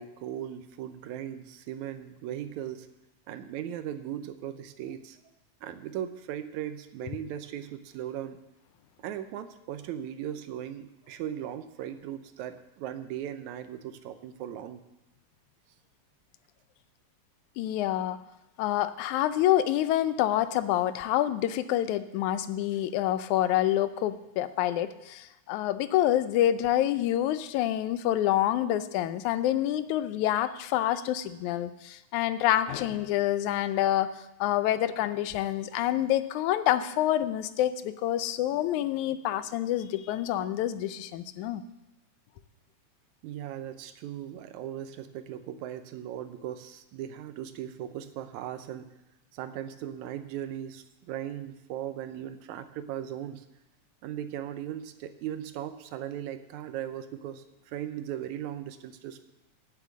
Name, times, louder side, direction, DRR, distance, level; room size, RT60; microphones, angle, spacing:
voice 1, 0.0-2.9 3.3-5.2 5.6-8.4 9.0-14.8 43.2-48.9 49.3-53.5 54.0-59.2, right 10 dB, 80° right, 10 dB, 2.1 m, -38 dB
voice 2, 17.6-18.2 18.6-34.1 34.4-41.6, left 12 dB, 85° left, 13 dB, 2.1 m, -27 dB
9.2 x 7.8 x 7.4 m, 0.95 s
omnidirectional pair, 3.3 m